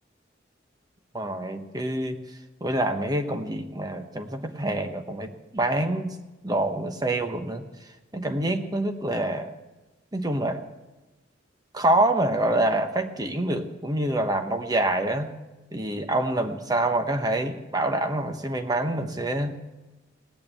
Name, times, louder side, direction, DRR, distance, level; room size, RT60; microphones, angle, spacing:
voice 1, 1.1-2.2 2.6-6.1 6.4-7.6 8.1-9.5 10.1-10.7 11.7-15.3 15.7-19.6, right 1 dB, 20° right, 6 dB, 1.0 m, -26 dB
18.0 x 6.5 x 8.9 m, 1.1 s
head